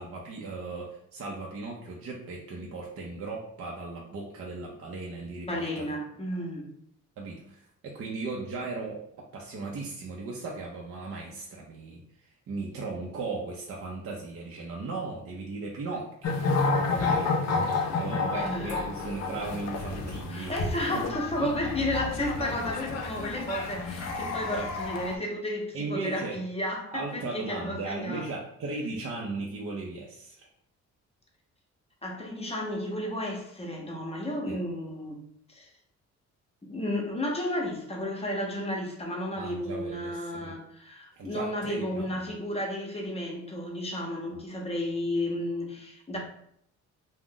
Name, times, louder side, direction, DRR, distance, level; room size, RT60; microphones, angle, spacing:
voice 1, 0.0-5.9 7.2-9.0 9.3-16.4 17.0-17.6 18.0-20.6 20.9-21.7 22.4-22.6 24.5-24.7 25.7-26.4 26.9-30.5 34.5-34.6 39.4-40.6 41.1-42.3 44.3-44.4, right 3 dB, 50° right, -2 dB, 0.6 m, -37 dB
voice 2, 5.5-6.7 18.1-18.9 20.3-28.3 32.0-35.2 35.5-35.7 36.6-46.2, left 1 dB, 20° left, -1 dB, 0.8 m, -33 dB
sound 1, 16.2-25.2, left 3 dB, 60° left, 0.5 m, -30 dB
2.4 x 2.1 x 3.7 m, 0.70 s
cardioid pair, 90°, 30 cm